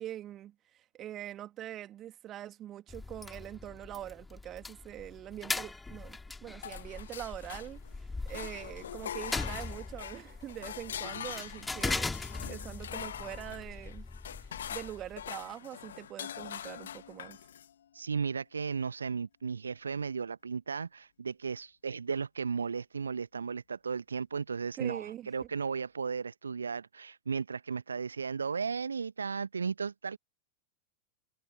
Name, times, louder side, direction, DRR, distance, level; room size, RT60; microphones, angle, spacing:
voice 1, 0.0-7.8 8.3-14.0 14.4-17.4 24.8-25.3, right 12 dB, 30° right, 2.1 m, -43 dB
sound 1, 2.9-15.3, left 3 dB, 10° left, 1.9 m, -40 dB
sound 2, 6.6-8.0 8.3-17.7, left 9 dB, 65° left, 1.5 m, -43 dB
voice 2, 17.9-30.2, right 5 dB, 75° right, 0.9 m, -35 dB
figure-of-eight pair, 90°, 0 cm